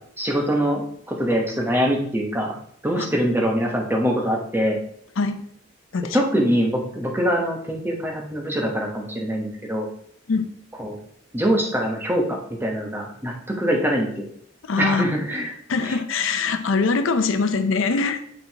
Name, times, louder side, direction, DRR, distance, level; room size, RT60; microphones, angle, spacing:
voice 1, 0.2-0.8 1.1-2.5 2.8-4.8 6.1-9.9 10.8-11.0 11.3-14.3 14.8-16.0, equal, 10° right, 0 dB, 1.1 m, -23 dB
voice 2, 14.6-15.0 15.7-18.2, left 4 dB, 85° left, 9 dB, 0.6 m, -22 dB
7.5 x 5.1 x 2.9 m, 0.64 s
head